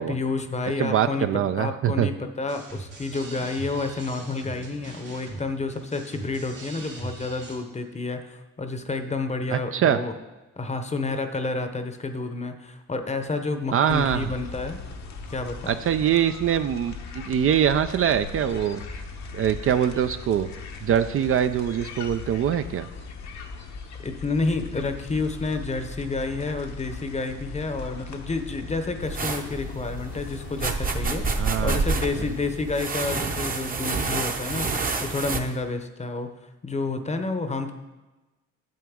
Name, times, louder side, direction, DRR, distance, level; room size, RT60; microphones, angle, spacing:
voice 1, 0.0-1.3 1.6-10.1 10.6-14.8 15.3-15.8 24.0-34.7 35.0-36.3 36.6-37.7, left 3 dB, 20° left, 8 dB, 0.8 m, -30 dB
voice 2, 0.8-2.1 9.5-10.0 13.7-14.3 15.7-18.8 19.3-20.5 20.8-22.9 31.4-31.8 32.2-32.3, right 9 dB, 45° right, 10 dB, 0.4 m, -23 dB
sound 1, 2.5-7.5, right 2 dB, 90° right, 2.9 m, -41 dB
sound 2, 13.9-33.4, left 4 dB, 65° left, 1.0 m, -39 dB
sound 3, 29.0-35.4, right 4 dB, 30° right, 0.8 m, -28 dB
9.2 x 7.4 x 3.6 m, 1.1 s
cardioid pair, 90°, 30 cm